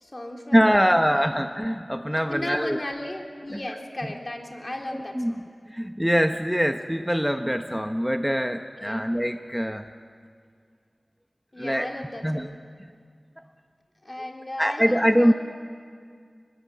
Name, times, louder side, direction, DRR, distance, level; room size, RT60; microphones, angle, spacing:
voice 1, 0.0-1.4 2.1-5.6 8.8-9.0 11.5-12.6 14.0-15.3, left 1 dB, 40° left, 1 dB, 3.4 m, -36 dB
voice 2, 0.5-2.8 3.5-3.8 4.9-9.8 11.6-11.9 12.2-12.5 14.6-15.3, equal, 5° right, 6 dB, 0.9 m, -23 dB
23.5 x 21.0 x 7.7 m, 2.1 s
wide cardioid pair, 45°, 0 cm